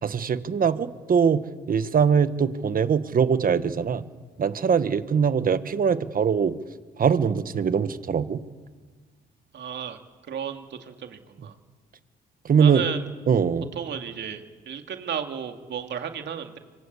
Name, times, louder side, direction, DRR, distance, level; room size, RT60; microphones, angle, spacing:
voice 1, 0.0-4.0 4.4-6.5 7.0-8.4 12.4-12.8 13.3-13.7, right 6 dB, 45° right, 12 dB, 1.4 m, -22 dB
voice 2, 9.5-10.0 10.3-11.5 12.6-13.0 13.7-16.6, right 8 dB, 65° right, 5 dB, 2.7 m, -33 dB
26.0 x 23.0 x 8.5 m, 1.4 s
cardioid pair, 90°, 20 cm